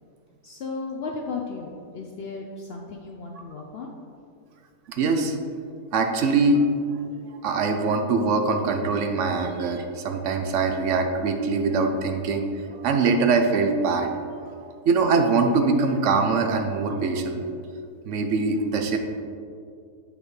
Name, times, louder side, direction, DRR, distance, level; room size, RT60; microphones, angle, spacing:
voice 1, 0.4-3.9, left 4 dB, 85° left, 1 dB, 0.5 m, -35 dB
voice 2, 4.9-5.3 5.9-6.6 7.2-12.4 12.7-14.2 14.9-17.4 18.1-19.0, right 4 dB, 65° right, 5 dB, 0.8 m, -23 dB
8.6 x 5.0 x 3.2 m, 2.3 s
omnidirectional pair, 1.6 m